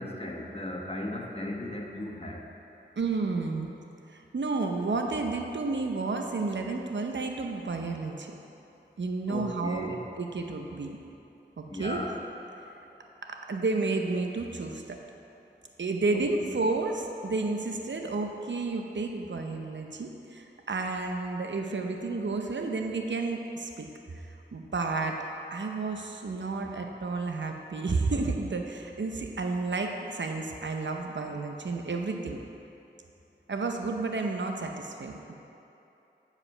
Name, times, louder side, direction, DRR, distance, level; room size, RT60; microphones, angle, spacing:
voice 1, 0.0-2.4 9.3-10.0 11.7-12.1 16.1-16.5 26.7-26.8, left 1 dB, 30° left, -1 dB, 1.2 m, -36 dB
voice 2, 3.0-3.7 4.1-8.3 9.0-9.8 10.2-11.0 11.6-12.0 13.2-15.0 15.8-23.9 24.5-25.2 25.5-32.4 33.5-35.3, right 3 dB, 80° right, 3 dB, 0.7 m, -31 dB
9.8 x 4.9 x 5.5 m, 2.9 s
wide cardioid pair, 55°, 19 cm